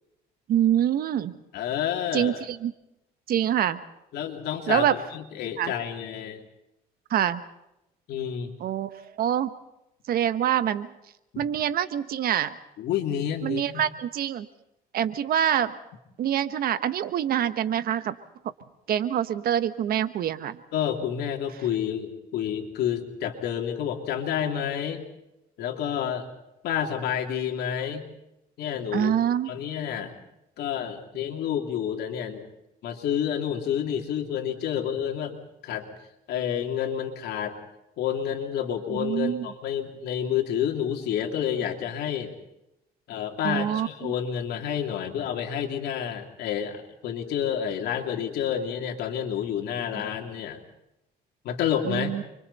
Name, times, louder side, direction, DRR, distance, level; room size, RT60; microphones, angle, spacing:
voice 1, 0.5-1.3 2.1-2.7 3.3-3.8 4.7-4.9 5.6-5.7 7.1-7.4 8.6-9.5 10.1-10.9 11.4-12.5 13.4-14.5 14.9-15.7 16.2-18.1 18.9-20.6 28.9-29.5 38.9-39.5 43.4-44.1 51.9-52.2, right 10 dB, 60° right, 12 dB, 1.2 m, -25 dB
voice 2, 1.5-2.4 4.1-6.4 8.1-8.5 11.3-11.4 12.8-13.8 20.7-25.0 25.6-26.2 26.6-28.1 28.6-29.1 29.5-30.2 30.6-32.5 32.8-35.9 36.3-37.5 38.0-42.3 43.1-50.6 51.4-52.1, left 9 dB, 75° left, 3 dB, 3.2 m, -29 dB
29.0 x 24.5 x 4.2 m, 0.88 s
cardioid pair, 110°, 17 cm